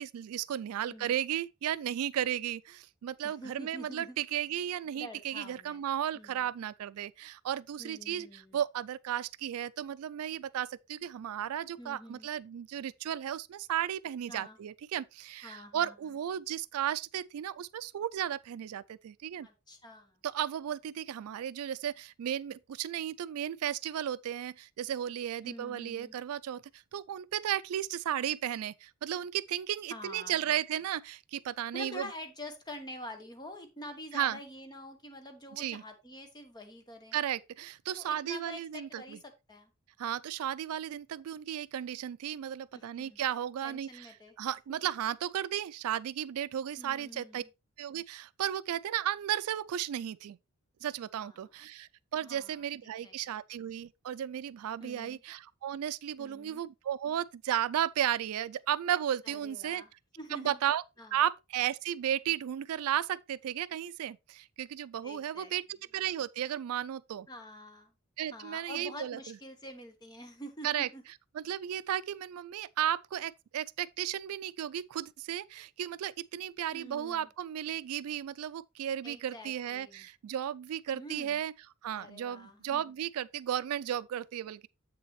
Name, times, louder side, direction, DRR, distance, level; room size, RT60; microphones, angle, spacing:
voice 1, 0.0-19.5 20.2-32.1 34.1-34.4 35.5-35.8 37.1-39.2 40.0-44.1 44.4-47.4 47.8-50.4 50.8-59.8 60.3-60.8 61.1-67.3 68.2-69.3 70.6-70.9 71.3-81.5 81.8-84.7, right 10 dB, 80° right, 0.3 m, -34 dB
voice 2, 3.2-4.2 4.9-5.8 6.1-6.5 7.8-8.6 11.8-12.3 14.3-14.6 15.4-15.9 19.4-20.2 25.4-26.2 29.9-30.6 31.7-37.2 38.0-39.7 42.7-43.2 43.6-44.3 44.7-44.8 46.8-47.5 51.1-51.4 52.2-53.1 54.8-55.2 56.2-56.6 59.2-60.6 61.0-61.2 65.0-65.5 67.3-67.9 68.3-71.0 76.7-77.3 79.0-80.1 80.9-81.4 81.9-82.9, left 1 dB, 20° left, 1.1 m, -47 dB
7.8 x 6.7 x 3.1 m
head